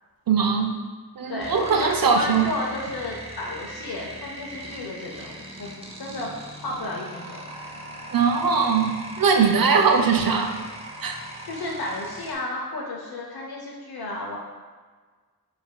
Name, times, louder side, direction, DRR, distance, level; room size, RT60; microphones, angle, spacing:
voice 1, 0.3-0.7 1.2-2.5 8.1-10.6 11.0-11.2, right 5 dB, 65° right, 5 dB, 0.5 m, -21 dB
voice 2, 1.3-5.3 5.6-6.3 6.6-7.4 11.4-14.4, left 2 dB, 75° left, -3 dB, 0.6 m, -32 dB
sound 1, 1.4-12.3, right 1 dB, 15° right, 0.5 m, -40 dB
6.9 x 2.6 x 2.2 m, 1.5 s
wide cardioid pair, 55°, 37 cm